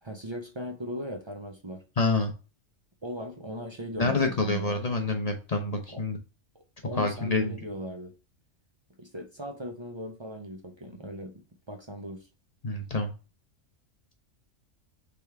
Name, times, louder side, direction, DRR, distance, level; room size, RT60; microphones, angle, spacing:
voice 1, 0.0-1.8 3.0-4.8 5.9-6.0 6.5-8.1 9.0-12.3, equal, 40° right, 0.4 m, -39 dB
voice 2, 2.0-2.3 4.0-6.2 6.9-7.6 12.6-13.1, left 3 dB, 40° left, 0.6 m, -27 dB
3.5 x 3.3 x 4.5 m
omnidirectional pair, 1.3 m